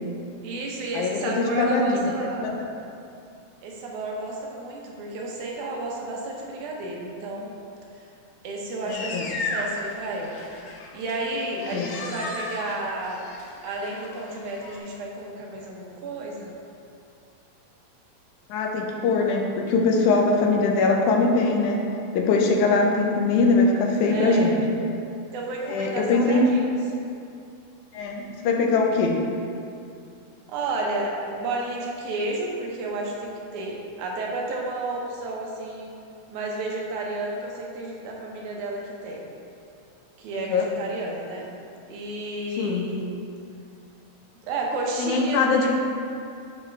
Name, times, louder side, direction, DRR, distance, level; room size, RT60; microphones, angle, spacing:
voice 1, 0.4-2.5 3.6-7.5 8.0-8.1 8.4-10.4 10.9-13.3 13.6-16.5 24.1-24.5 25.3-26.8 30.5-35.9 36.3-39.3 40.2-41.4 41.9-43.1 44.4-45.7, right 2 dB, 85° right, -1 dB, 2.4 m, -31 dB
voice 2, 0.9-2.1 2.4-2.7 8.8-9.3 11.7-11.9 18.5-21.8 22.2-24.6 25.7-26.4 27.9-29.2 40.5-40.7 42.6-42.9 45.0-45.7, left 3 dB, 90° left, 1 dB, 2.1 m, -22 dB
sound 1, 8.9-14.8, left 2 dB, 70° left, 1.4 m, -35 dB
9.8 x 4.1 x 3.4 m, 2.5 s
omnidirectional pair, 3.4 m